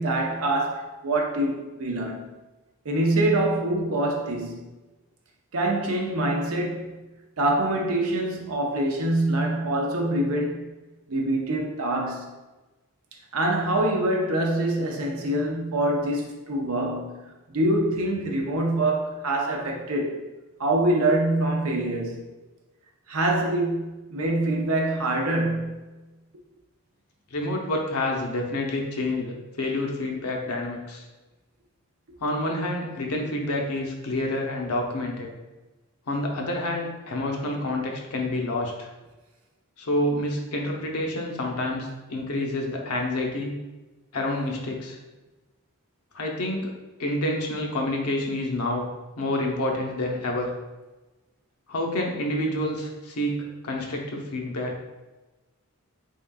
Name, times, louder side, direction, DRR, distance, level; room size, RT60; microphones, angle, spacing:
voice 1, 0.0-2.3 2.8-4.7 5.5-6.9 7.4-10.7 11.1-12.3 13.3-20.2 20.6-22.2 23.1-25.8, right 1 dB, 75° right, 0.6 m, -25 dB
voice 2, 27.3-31.1 32.2-35.3 36.1-38.9 39.8-43.5 44.1-45.0 46.1-46.7 47.0-48.9 49.2-50.5 51.7-54.9, left 1 dB, 85° left, 0.7 m, -28 dB
3.7 x 3.6 x 2.3 m
head